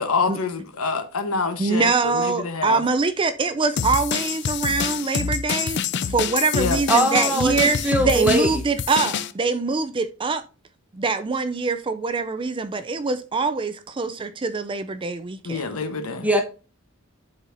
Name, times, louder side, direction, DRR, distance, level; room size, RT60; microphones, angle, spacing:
voice 1, 0.0-2.8 6.5-6.8 15.4-16.3, left 4 dB, 85° left, 1.1 m, -26 dB
voice 2, 1.6-5.8 6.1-10.4 10.9-15.8, right 4 dB, 25° right, 0.4 m, -24 dB
sound 1, 3.8-9.3, left 7 dB, 55° left, 0.4 m, -26 dB
voice 3, 6.9-8.6 16.2-16.4, right 1 dB, 5° right, 1.0 m, -21 dB
11.0 x 4.0 x 2.6 m
head